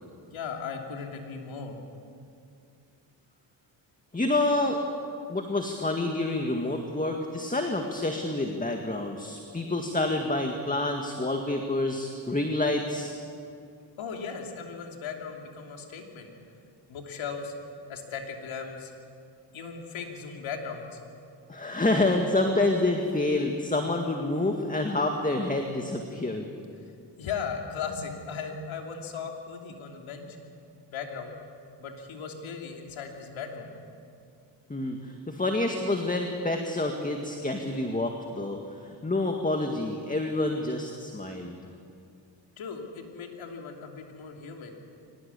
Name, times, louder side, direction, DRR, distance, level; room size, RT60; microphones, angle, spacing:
voice 1, 0.3-1.8 14.0-16.3 16.9-17.5 17.9-18.9 19.5-21.0 26.8-26.9 27.2-30.4 30.9-31.3 31.8-33.7 42.6-44.8, left 6 dB, 85° left, 2 dB, 3.1 m, -37 dB
voice 2, 4.1-4.8 5.3-13.1 21.5-26.5 34.7-41.6, left 2 dB, 15° left, 3 dB, 1.9 m, -28 dB
23.5 x 19.5 x 8.4 m, 2.5 s
cardioid pair, 85°, 46 cm